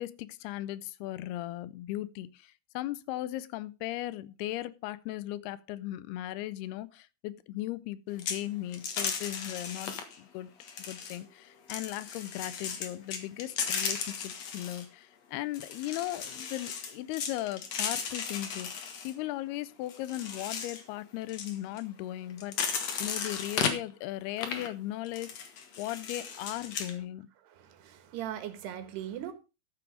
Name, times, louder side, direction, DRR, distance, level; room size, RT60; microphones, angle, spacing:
voice 1, 0.0-10.5 10.8-25.3 25.8-27.3, left 15 dB, 80° left, 2.6 m, -37 dB
sound 1, 8.2-8.4 8.7-10.2 10.6-11.2 11.7-14.9 15.5-19.1 19.9-20.8 21.2-21.8 22.3-23.8 24.4-24.7 25.0-26.9, left 6 dB, 55° left, 2.2 m, -35 dB
voice 2, 27.5-29.3, right 11 dB, 90° right, 3.5 m, -39 dB
14.0 x 6.2 x 5.1 m
omnidirectional pair, 4.6 m